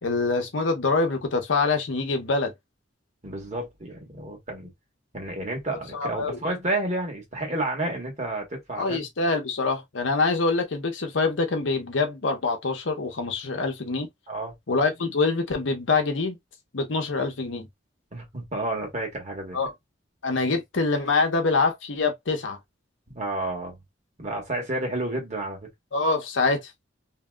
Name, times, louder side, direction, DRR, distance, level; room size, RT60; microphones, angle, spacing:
voice 1, 0.0-2.5 5.9-6.4 8.8-14.1 14.7-16.4 16.7-17.7 19.5-19.7 20.2-22.6 25.9-26.7, left 3 dB, 80° left, 0.8 m, -25 dB
voice 2, 3.2-4.7 5.1-9.0 14.3-14.5 18.1-19.6 23.1-23.8 24.2-25.6, right 2 dB, 35° right, 1.2 m, -30 dB
2.8 x 2.7 x 2.3 m
head